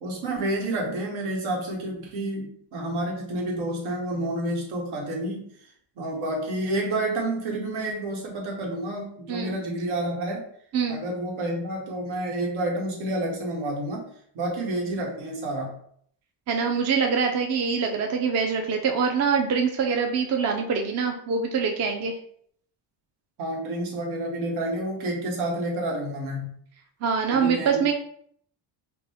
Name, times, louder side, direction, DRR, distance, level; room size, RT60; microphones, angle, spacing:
voice 1, 0.0-5.5 6.0-10.4 10.9-14.0 14.3-15.8 23.4-26.5 27.3-27.8, right 1 dB, 75° right, -1 dB, 1.5 m, -29 dB
voice 2, 16.5-22.2 27.0-27.9, right 6 dB, 35° right, 3 dB, 0.4 m, -24 dB
5.0 x 2.2 x 3.4 m, 0.63 s
cardioid pair, 160°, 49 cm